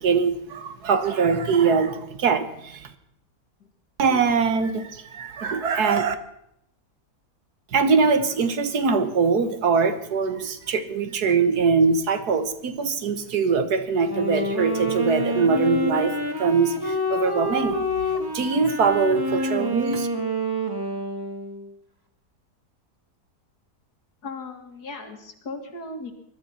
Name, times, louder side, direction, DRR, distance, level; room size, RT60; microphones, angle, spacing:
voice 1, 0.0-2.9 4.0-6.1 7.7-20.1, right 5 dB, 70° right, 10 dB, 1.7 m, -22 dB
Wind instrument woodwind instrument, 14.1-21.7, equal, 15° right, 1.6 m, -27 dB
voice 2, 24.2-26.1, left 3 dB, 70° left, 6 dB, 2.5 m, -37 dB
20.5 x 12.5 x 5.7 m, 0.75 s
omnidirectional pair, 1.8 m